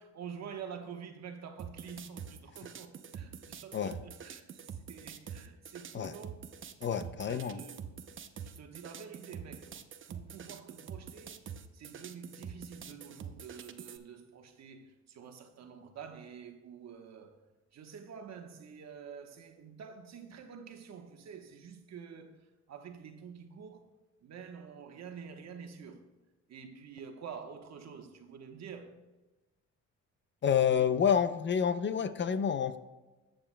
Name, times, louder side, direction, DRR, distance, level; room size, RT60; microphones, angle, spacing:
voice 1, 0.0-6.4 7.0-7.9 8.4-11.4 11.7-17.4 17.7-23.9 24.2-26.1 26.5-29.0 30.7-30.9, right 6 dB, 60° right, 1.2 m, -48 dB
sound 1, 1.6-14.0, right 7 dB, 40° right, 0.6 m, -46 dB
voice 2, 6.8-7.6 30.4-32.8, left 8 dB, 40° left, 0.5 m, -28 dB
13.5 x 7.8 x 2.2 m
cardioid pair, 90°, 30 cm